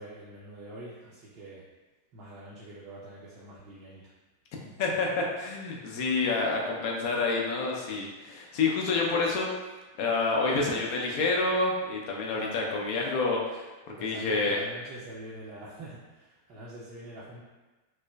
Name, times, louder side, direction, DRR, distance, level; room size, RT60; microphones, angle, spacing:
voice 1, 0.0-1.6 2.1-4.0 4.5-4.7 12.3-12.8 13.9-17.4, right 1 dB, 40° right, -8 dB, 0.5 m, -44 dB
voice 2, 4.8-9.5 10.0-13.7 14.0-14.6, left 3 dB, 45° left, -1 dB, 0.4 m, -28 dB
3.0 x 2.1 x 2.2 m, 1.2 s
figure-of-eight pair, 90°, 0 cm